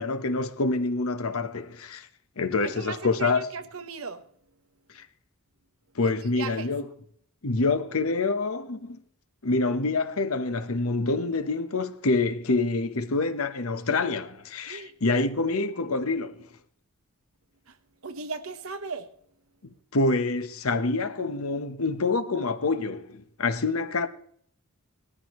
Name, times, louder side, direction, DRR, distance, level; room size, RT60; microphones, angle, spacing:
voice 1, 0.0-2.1 2.4-3.5 4.9-5.1 5.9-6.8 7.4-9.0 9.4-16.4 19.9-24.1, left 3 dB, 75° left, 0.9 m, -26 dB
voice 2, 2.6-4.2 6.0-6.7 14.7-14.9 17.7-17.8 18.0-19.1, right 4 dB, 75° right, 1.1 m, -37 dB
18.5 x 13.5 x 3.1 m
head